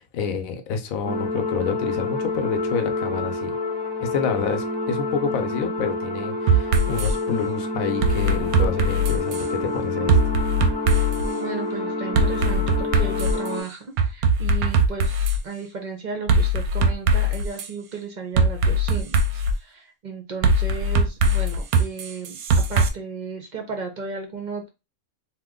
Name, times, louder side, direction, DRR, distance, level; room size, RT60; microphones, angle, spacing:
voice 1, 0.0-3.5 4.0-10.2, left 6 dB, 75° left, 1.0 m, -28 dB
sound 1, 1.0-13.6, left 2 dB, 5° left, 0.9 m, -28 dB
sound 2, 6.5-7.1 8.0-9.5 10.1-11.3 12.1-13.5 14.0-15.4 16.3-17.7 18.4-19.5 20.4-22.9, right 1 dB, 90° right, 1.0 m, -20 dB
voice 2, 11.2-24.7, right 4 dB, 55° right, 0.5 m, -34 dB
2.9 x 2.1 x 3.6 m
omnidirectional pair, 1.5 m